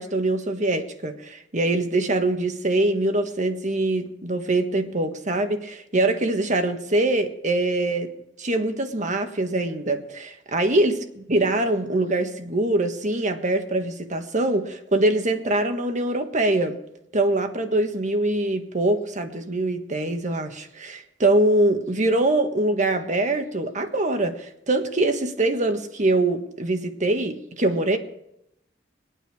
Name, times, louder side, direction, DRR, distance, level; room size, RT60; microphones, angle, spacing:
voice 1, 0.0-8.1 8.4-16.8 17.1-28.0, right 2 dB, 40° right, 1.5 m, -23 dB
23.0 x 9.1 x 4.8 m
head